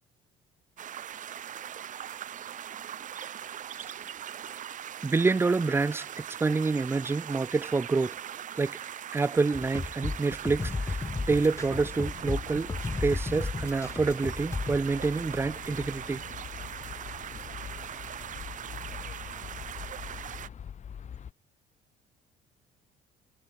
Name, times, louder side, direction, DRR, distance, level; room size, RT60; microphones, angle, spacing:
sound 1, 0.8-20.5, right 10 dB, 50° right, 1.4 m, -41 dB
voice 1, 5.0-8.2 8.6-8.8 9.1-12.7 13.0-16.2, right 4 dB, 15° right, 0.4 m, -27 dB
sound 2, 9.5-14.8, left 3 dB, 15° left, 1.0 m, -33 dB
sound 3, 11.1-21.3, left 8 dB, 45° left, 4.6 m, -44 dB
cardioid pair, 110°, 17 cm